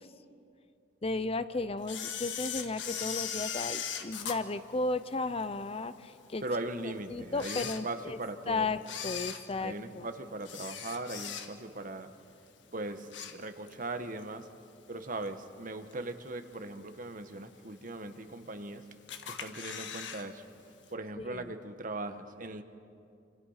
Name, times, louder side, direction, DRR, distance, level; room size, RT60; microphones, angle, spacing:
voice 1, 1.0-6.4 6.8-8.2 8.5-10.1 21.2-21.5, left 3 dB, 30° left, 13 dB, 0.7 m, -34 dB
Camera, 1.8-5.4 5.9-6.0 6.7-6.8 7.3-8.3 8.8-11.8 12.2-12.4 12.8-13.8 14.2-14.3 15.2-15.3 15.9-16.3 16.7-16.8 17.0-17.1 17.3-17.4 18.1-18.7 19.1-20.2 20.5-20.6 20.9-21.0, left 8 dB, 70° left, 1.7 m, -39 dB
voice 2, 6.4-8.7 9.6-12.1 12.7-14.5 14.9-18.8 19.3-20.4 20.9-22.6, right 2 dB, 45° right, 8 dB, 1.4 m, -39 dB
28.5 x 26.5 x 5.8 m, 2.5 s
head